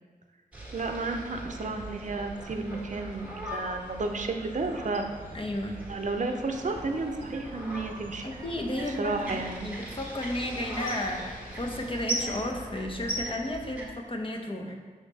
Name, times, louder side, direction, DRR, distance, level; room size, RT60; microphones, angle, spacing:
sound 1, 0.5-13.9, right 1 dB, 10° right, 1.5 m, -39 dB
voice 1, 0.7-5.0 5.9-8.3 8.9-9.7, right 3 dB, 60° right, 5 dB, 0.6 m, -32 dB
voice 2, 5.3-5.8 8.2-14.8, left 1 dB, 40° left, 2 dB, 0.8 m, -33 dB
sound 2, 6.5-12.6, right 3 dB, 35° right, 0.9 m, -49 dB
6.3 x 3.6 x 4.1 m, 1.4 s
wide cardioid pair, 90°, 15 cm